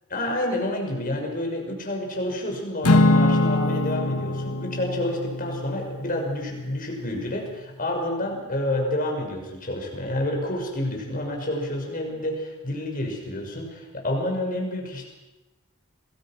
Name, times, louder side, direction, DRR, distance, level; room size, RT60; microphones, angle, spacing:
voice 1, 0.1-15.1, left 1 dB, 40° left, 1 dB, 6.1 m, -29 dB
Acoustic guitar / Strum, 2.8-7.3, left 2 dB, 80° left, 1.5 m, -23 dB
27.5 x 21.5 x 6.1 m, 1.1 s
head